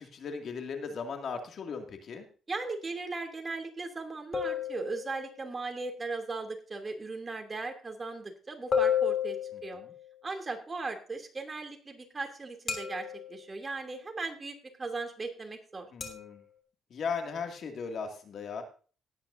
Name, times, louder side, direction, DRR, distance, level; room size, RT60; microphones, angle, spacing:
voice 1, 0.0-2.3 9.5-9.9 15.9-16.4 16.9-18.6, left 5 dB, 60° left, 4 dB, 2.2 m, -37 dB
voice 2, 2.5-9.4 9.6-9.8 10.2-15.9, right 3 dB, 30° right, 4 dB, 2.8 m, -38 dB
sound 1, 4.3-5.4 8.7-10.1 12.7-13.4 16.0-16.3, left 8 dB, 40° left, 3.0 m, -31 dB
18.0 x 9.7 x 2.6 m, 0.39 s
cardioid pair, 90°, 0 cm